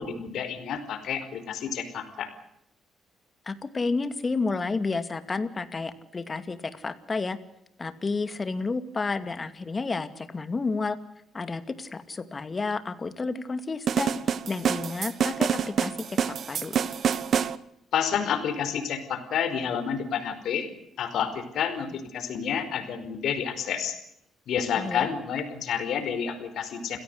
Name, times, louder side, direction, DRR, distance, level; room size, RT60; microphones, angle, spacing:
voice 1, 0.0-2.3 17.9-20.7 21.0-24.0 24.5-27.0, left 7 dB, 75° left, 9 dB, 4.8 m, -29 dB
voice 2, 3.5-7.4 7.8-11.0 11.3-14.1 14.5-16.8 24.7-25.1, left 3 dB, 30° left, 12 dB, 2.5 m, -31 dB
sound 1, 13.9-17.6, right 7 dB, 60° right, 1.2 m, -27 dB
29.0 x 17.0 x 8.1 m, 0.77 s
cardioid pair, 90°, 0 cm